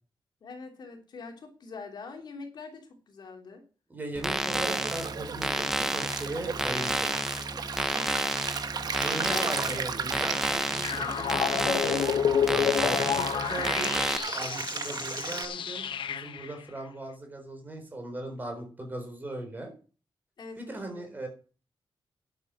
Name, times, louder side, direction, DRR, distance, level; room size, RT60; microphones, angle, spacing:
voice 1, 0.4-3.6 7.9-8.4 9.2-10.1 20.4-21.1, left 4 dB, 55° left, 3 dB, 3.1 m, -44 dB
voice 2, 3.9-7.2 9.0-12.1 12.4-13.9 14.3-19.7 20.6-21.3, right 2 dB, 20° right, 4 dB, 4.1 m, -38 dB
sound 1, 4.1-14.2, right 1 dB, 5° right, 0.8 m, -31 dB
Stream, 4.5-15.5, right 6 dB, 50° right, 1.2 m, -36 dB
sound 2, 10.8-16.5, left 8 dB, 75° left, 0.9 m, -29 dB
11.0 x 8.3 x 6.4 m, 0.36 s
wide cardioid pair, 175°, 9 cm